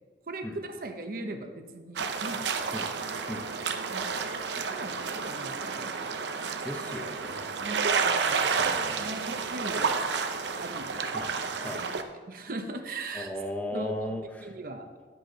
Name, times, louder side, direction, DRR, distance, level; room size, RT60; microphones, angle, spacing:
voice 1, 0.3-2.4 3.9-4.2 4.5-6.0 7.6-8.5 9.0-10.0 10.6-10.9 11.7-11.9 12.3-13.3 13.7-14.1 14.4-14.9, right 2 dB, 55° right, 5 dB, 0.8 m, -39 dB
sound 1, 2.0-12.0, right 5 dB, 80° right, 0.7 m, -30 dB
voice 2, 6.6-7.5 8.6-9.0 11.1-11.3 11.6-11.8 13.1-14.5, left 1 dB, 10° left, 2 dB, 0.8 m, -36 dB
11.0 x 7.8 x 4.0 m, 1.5 s
head